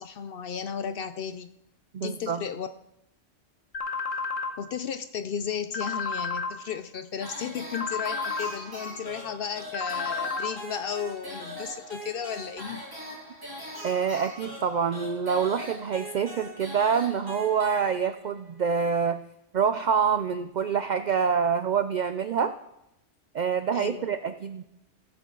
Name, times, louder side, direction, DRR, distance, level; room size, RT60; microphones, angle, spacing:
voice 1, 0.0-1.5 2.0-2.7 4.6-12.8 23.7-24.1, left 7 dB, 60° left, 11 dB, 0.6 m, -34 dB
voice 2, 1.9-2.4 13.8-19.2 19.5-22.5 23.3-24.6, right 6 dB, 75° right, 11 dB, 0.4 m, -26 dB
sound 1, 3.7-4.5 5.7-6.5 7.7-8.5 9.7-10.5, left 4 dB, 80° left, 1.6 m, -31 dB
sound 2, 7.2-18.3, equal, 15° right, 3.0 m, -41 dB
15.5 x 8.1 x 3.8 m, 0.85 s
omnidirectional pair, 1.3 m